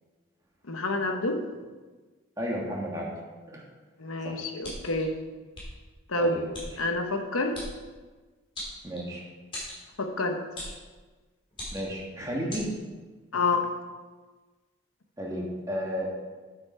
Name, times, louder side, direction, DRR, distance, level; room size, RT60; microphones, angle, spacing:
voice 1, 0.7-1.4 4.0-5.1 6.1-6.3 6.8-7.6 10.0-10.4 13.3-13.7, left 3 dB, 90° left, 5 dB, 1.1 m, -28 dB
voice 2, 2.4-3.1 3.5-3.6 4.2-4.4 6.2-6.4 8.8-9.3 11.7-12.6 15.2-16.1, equal, 15° right, -2 dB, 1.6 m, -32 dB
sound 1, 4.6-5.0 5.5-5.7 6.5-6.7 7.5-7.7 8.5-9.1 9.5-9.8 10.5-10.8 11.5-12.0 12.5-12.7, left 1 dB, 25° left, 3.2 m, -38 dB
8.5 x 8.2 x 4.4 m, 1.3 s
head